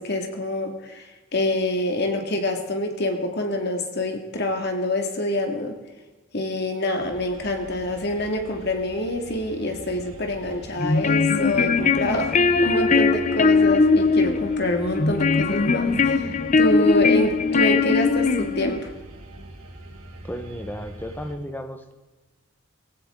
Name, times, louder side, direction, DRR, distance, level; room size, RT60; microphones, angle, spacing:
voice 1, 0.0-5.8 6.3-18.9, left 1 dB, 50° left, 4 dB, 2.0 m, -26 dB
sound 1, 7.0-21.3, right 1 dB, 80° right, 2.9 m, -43 dB
sound 2, 10.8-18.8, left 4 dB, 35° left, 0.6 m, -20 dB
voice 2, 20.2-21.9, equal, 10° left, 7 dB, 1.0 m, -34 dB
18.0 x 16.5 x 3.7 m, 1.2 s
head